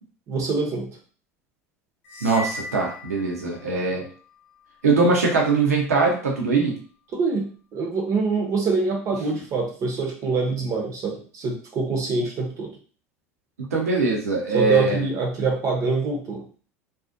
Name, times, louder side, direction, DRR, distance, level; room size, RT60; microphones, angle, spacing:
voice 1, 0.3-0.9 7.1-12.8 14.5-16.5, right 4 dB, 45° right, 0 dB, 0.8 m, -25 dB
sound 1, 2.0-3.9, left 1 dB, 70° left, 0.7 m, -37 dB
voice 2, 2.2-4.0 4.8-6.7 13.7-15.1, right 3 dB, 85° right, -1 dB, 0.8 m, -21 dB
2.6 x 2.4 x 2.5 m, 0.42 s
hypercardioid pair, 75°, 8 cm